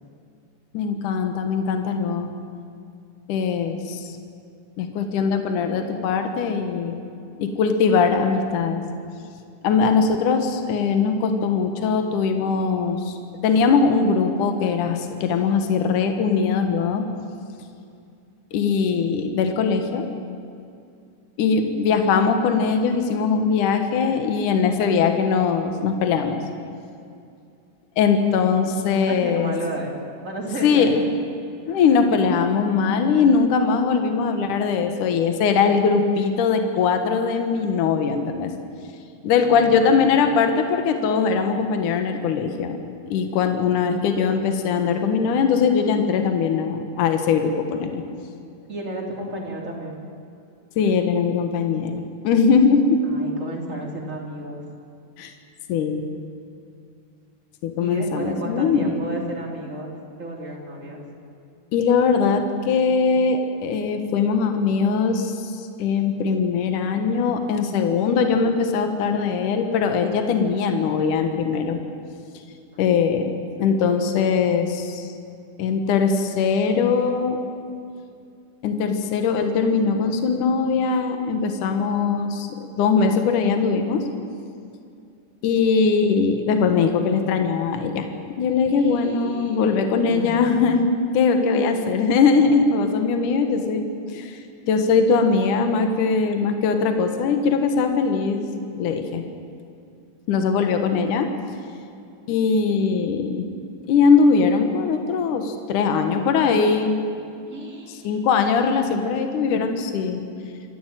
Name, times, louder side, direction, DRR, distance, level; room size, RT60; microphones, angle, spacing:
voice 1, 0.7-2.3 3.3-4.2 4.8-7.0 7.4-8.8 9.6-13.2 13.4-17.1 18.5-20.1 21.4-26.4 28.0-29.5 30.6-31.0 31.7-38.5 39.2-42.8 43.1-48.0 50.8-53.0 55.2-55.3 55.7-56.1 57.6-59.1 61.7-71.8 72.8-73.3 73.6-75.1 75.6-77.4 78.6-84.1 85.4-94.4 94.7-98.4 98.7-99.2 100.3-101.3 102.3-103.5 103.9-107.0 108.0-110.2, left 5 dB, 75° left, 6 dB, 2.9 m, -21 dB
voice 2, 29.1-29.9 30.2-31.0 39.4-40.2 48.7-50.0 53.0-54.6 57.8-59.9 60.2-61.0 88.7-90.5 107.5-108.2 108.6-109.9, right 1 dB, 25° right, -1 dB, 3.5 m, -33 dB
25.5 x 14.5 x 9.1 m, 2.4 s
omnidirectional pair, 3.8 m